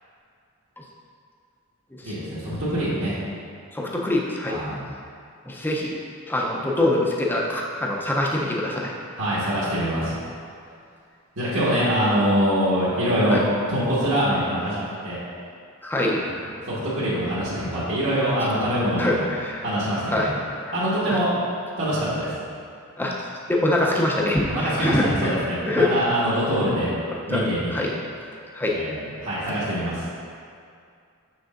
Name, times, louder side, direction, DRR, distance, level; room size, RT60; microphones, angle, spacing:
voice 1, 2.0-3.2 4.5-4.8 9.2-10.1 11.4-13.4 13.7-15.2 16.7-19.3 19.6-20.3 20.7-21.3 21.8-22.3 24.5-26.9 27.3-27.9 28.7-30.0, equal, 65° right, -10 dB, 1.3 m, -24 dB
voice 2, 3.7-4.6 5.5-6.0 6.3-8.9 13.3-13.4 15.8-16.2 19.0-19.6 20.1-20.4 21.1-21.2 23.0-23.1 23.5-25.3 25.6-26.0 27.3-27.5 27.7-27.9 28.5-28.8, left 1 dB, 10° left, -3 dB, 0.5 m, -24 dB
6.5 x 6.1 x 2.5 m, 2.4 s
head